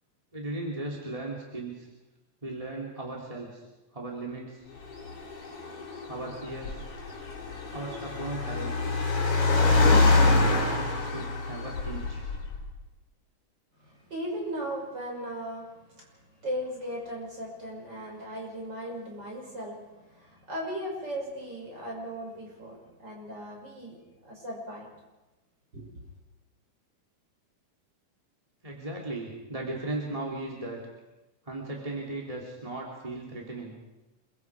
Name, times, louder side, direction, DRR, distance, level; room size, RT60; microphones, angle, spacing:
voice 1, 0.3-1.9 2.4-3.7 3.9-4.6 6.1-6.9 7.7-8.9 9.8-12.2 28.6-30.8 31.4-33.8, right 2 dB, 10° right, -3 dB, 3.0 m, -37 dB
Car, 4.8-12.7, left 3 dB, 70° left, 4.6 m, -26 dB
voice 2, 13.8-24.9 25.7-26.0, equal, 35° right, -1 dB, 6.5 m, -37 dB
27.0 x 23.5 x 4.9 m, 1.1 s
omnidirectional pair, 3.6 m